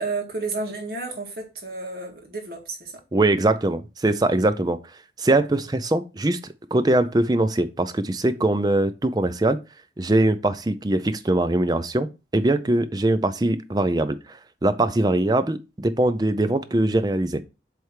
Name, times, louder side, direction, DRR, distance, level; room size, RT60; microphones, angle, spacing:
voice 1, 0.0-3.0, right 3 dB, 55° right, 1.9 m, -31 dB
voice 2, 3.1-4.8 5.2-6.4 6.7-9.6 10.0-12.1 12.3-17.4, right 2 dB, 20° right, 0.5 m, -22 dB
7.8 x 3.5 x 4.7 m
head